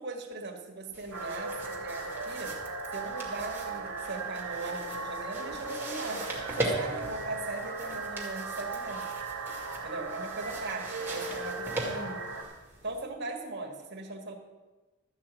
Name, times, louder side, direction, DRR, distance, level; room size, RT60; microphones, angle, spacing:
voice 1, 0.0-2.6 2.9-6.3 6.6-9.1 9.8-12.3 12.8-14.4, right 2 dB, 50° right, 0 dB, 1.8 m, -39 dB
sound 1, 0.9-13.0, right 2 dB, 10° right, 2.1 m, -40 dB
sound 2, 1.1-12.4, right 3 dB, 85° right, 1.8 m, -38 dB
12.5 x 5.7 x 8.2 m, 1.2 s
head